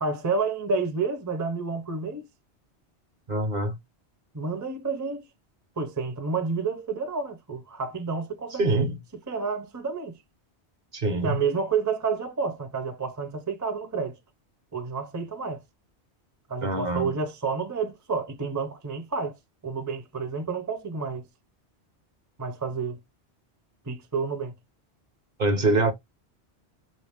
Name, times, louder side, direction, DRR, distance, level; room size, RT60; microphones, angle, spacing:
voice 1, 0.0-2.3 4.3-5.2 5.8-8.7 9.3-10.2 11.2-14.2 14.7-15.6 16.5-19.4 19.6-21.3 22.4-23.0 23.9-24.6, right 4 dB, 20° right, 0.5 m, -29 dB
voice 2, 3.3-3.8 8.6-9.0 10.9-11.4 16.6-17.1 25.4-25.9, right 2 dB, 45° right, 0.9 m, -24 dB
5.7 x 2.6 x 3.6 m
omnidirectional pair, 1.1 m